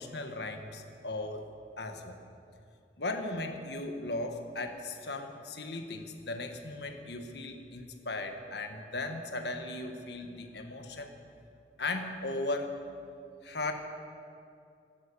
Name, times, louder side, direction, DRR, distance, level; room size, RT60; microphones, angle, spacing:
voice 1, 0.0-1.5 1.8-2.2 3.0-11.2 11.8-12.7 13.4-13.7, left 2 dB, 75° left, 5 dB, 1.5 m, -37 dB
13.5 x 12.5 x 8.4 m, 2.5 s
head